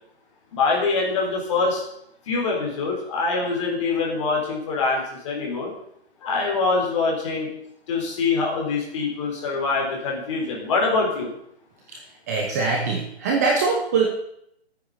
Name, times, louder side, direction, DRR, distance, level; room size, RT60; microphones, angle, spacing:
voice 1, 0.5-1.8 2.3-5.7 6.2-7.5 7.9-11.3, left 4 dB, 30° left, -1 dB, 3.9 m, -24 dB
voice 2, 12.3-14.1, right 4 dB, 15° right, 0 dB, 0.9 m, -22 dB
12.5 x 9.4 x 6.6 m, 0.75 s
hypercardioid pair, 170°, 33 cm